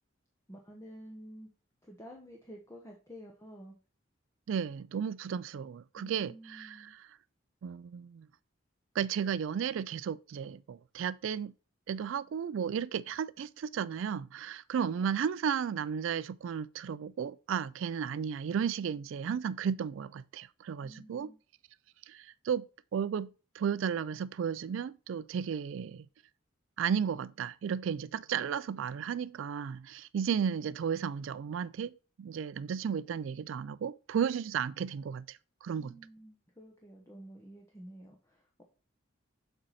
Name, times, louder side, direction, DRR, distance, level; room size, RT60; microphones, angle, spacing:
voice 1, 0.5-1.5 1.8-3.7 6.0-6.9 20.8-21.4 35.8-38.6, equal, 15° left, 1.1 m, -50 dB
voice 2, 4.5-7.1 7.6-8.3 8.9-11.5 11.9-21.3 22.1-22.7 22.9-23.3 23.5-26.1 26.8-35.9, right 7 dB, 75° right, 0.3 m, -34 dB
7.6 x 4.4 x 4.1 m
head